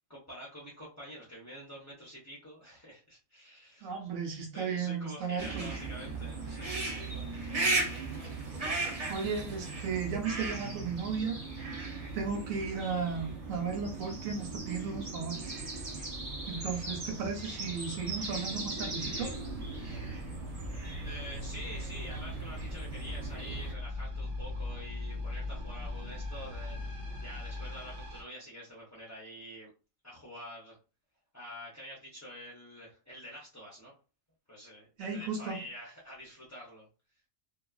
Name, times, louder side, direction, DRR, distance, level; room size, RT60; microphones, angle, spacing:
voice 1, 0.1-3.9 4.5-7.3 10.3-10.5 21.0-29.7 30.0-30.8 31.3-33.9 34.5-36.9, equal, 20° left, 0.5 m, -47 dB
voice 2, 3.8-5.7 9.1-11.4 12.1-15.5 16.5-19.3 35.0-35.6, right 5 dB, 90° right, 1.1 m, -35 dB
sound 1, 5.4-23.7, right 3 dB, 40° right, 0.6 m, -37 dB
sound 2, 19.1-28.2, left 2 dB, 65° right, 1.0 m, -40 dB
2.8 x 2.3 x 2.3 m
omnidirectional pair, 1.4 m